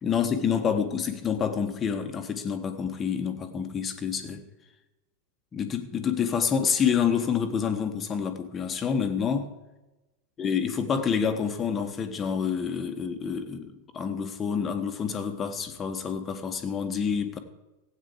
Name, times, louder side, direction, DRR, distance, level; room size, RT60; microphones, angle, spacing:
voice 1, 0.0-4.4 5.5-9.5 10.4-17.4, left 7 dB, 20° left, 7 dB, 1.3 m, -28 dB
15.5 x 8.8 x 4.9 m, 1.0 s
figure-of-eight pair, 90°, 0 cm